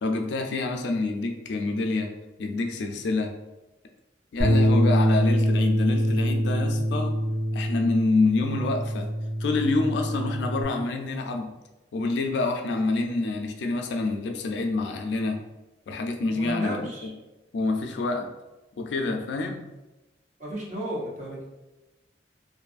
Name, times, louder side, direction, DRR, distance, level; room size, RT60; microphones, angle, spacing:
voice 1, 0.0-2.1 2.4-3.3 4.3-7.1 7.5-9.1 9.4-11.5 11.9-15.4 15.9-17.1 17.5-18.3 18.8-19.7, left 3 dB, 70° left, 4 dB, 0.3 m, -27 dB
Bass guitar, 4.4-10.6, equal, 10° right, 1.2 m, -24 dB
voice 2, 16.3-17.1 20.4-21.5, equal, 40° right, -3 dB, 0.6 m, -34 dB
2.5 x 2.4 x 2.3 m, 1.0 s
head